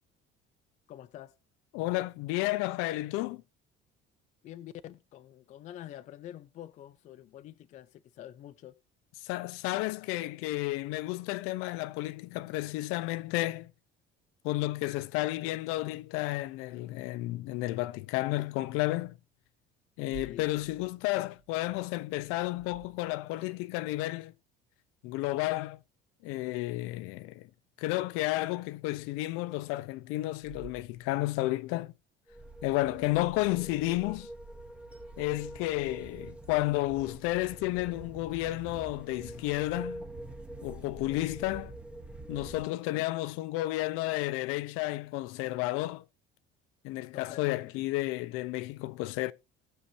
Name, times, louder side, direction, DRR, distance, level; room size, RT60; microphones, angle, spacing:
voice 1, 0.9-1.3 4.4-8.7 20.1-20.5 47.1-47.8, left 12 dB, 35° left, 0.4 m, -47 dB
voice 2, 1.7-3.4 9.2-13.7 14.4-19.2 20.0-24.3 25.0-25.8 26.2-27.5 27.8-31.9 32.6-34.3 35.2-40.0 40.6-41.7 42.3-46.0 46.8-49.3, left 18 dB, 90° left, 0.7 m, -32 dB
sound 1, 20.0-23.5 28.0-28.1 29.0-29.1 30.3-31.6 37.2-37.4, right 6 dB, 90° right, 2.4 m, -52 dB
sound 2, 32.3-42.6, right 2 dB, 5° right, 1.0 m, -45 dB
18.5 x 7.0 x 2.7 m
cardioid pair, 180°, 21 cm